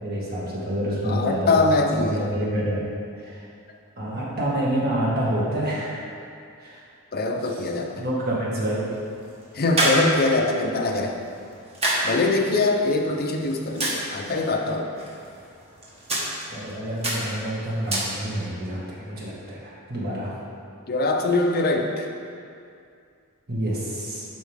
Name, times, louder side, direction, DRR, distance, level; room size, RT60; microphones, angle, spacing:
voice 1, 0.0-1.6 1.9-2.8 3.1-3.4 4.0-6.1 6.6-6.8 7.9-8.8 16.5-20.3 23.5-24.2, right 1 dB, 45° right, -6 dB, 1.8 m, -27 dB
voice 2, 1.0-2.2 7.1-8.0 9.5-11.2 12.0-14.9 20.9-22.1, left 2 dB, 45° left, 3 dB, 0.7 m, -23 dB
sound 1, 8.5-18.6, right 1 dB, 30° right, 1.6 m, -30 dB
11.0 x 4.7 x 3.6 m, 2.4 s
head